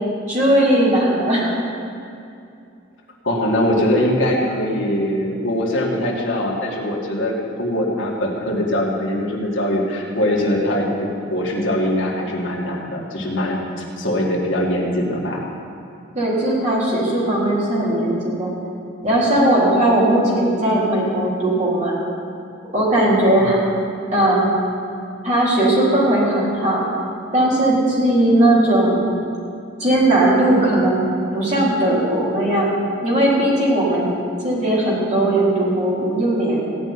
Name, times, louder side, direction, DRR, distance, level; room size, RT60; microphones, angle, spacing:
voice 1, 0.3-1.5 16.1-18.5 19.0-21.9 22.7-23.6 24.1-24.5 25.2-26.8 27.3-29.1 29.8-31.1 31.3-32.7 33.0-36.7, right 1 dB, 35° right, -7 dB, 3.7 m, -18 dB
voice 2, 3.2-15.4 23.4-23.5, left 1 dB, 65° left, -2 dB, 2.2 m, -22 dB
16.5 x 5.5 x 9.7 m, 2.5 s
head